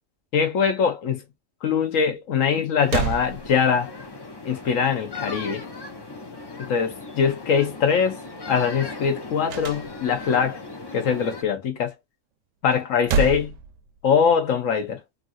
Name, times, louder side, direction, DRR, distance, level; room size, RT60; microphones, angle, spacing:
voice 1, 0.3-1.2 1.6-3.9 4.4-5.6 6.6-8.2 8.5-10.6 10.9-11.9 12.6-13.5 14.0-15.0, left 6 dB, 80° left, 1.2 m, -22 dB
sound 1, 2.5-2.6 2.9-4.0 9.5-10.4 12.7-14.3, right 6 dB, 80° right, 0.9 m, -28 dB
sound 2, 2.8-11.4, left 3 dB, 40° left, 0.3 m, -38 dB
3.1 x 2.6 x 2.5 m
omnidirectional pair, 1.3 m